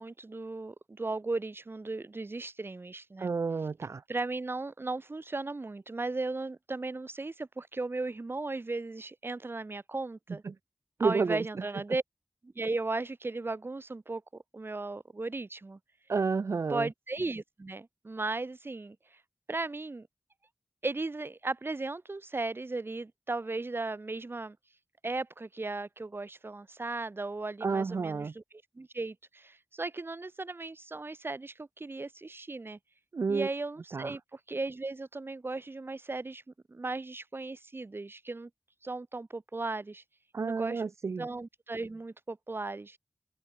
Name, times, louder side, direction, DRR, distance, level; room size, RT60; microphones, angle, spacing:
voice 1, 0.0-3.3 4.1-10.4 11.0-12.0 12.4-14.2 14.5-15.8 16.7-19.2 19.5-20.1 20.8-24.6 25.0-28.4 28.7-32.8 33.3-36.4 36.7-38.5 38.8-40.0 40.4-40.8 41.2-43.0, right 3 dB, 50° right, 1.4 m, -36 dB
voice 2, 3.2-4.0 10.5-10.6 11.0-11.4 16.1-16.9 27.6-28.3 33.1-33.5 33.9-34.1 40.3-41.2, right 4 dB, 80° right, 0.4 m, -30 dB
open air
wide cardioid pair, 75°, 5 cm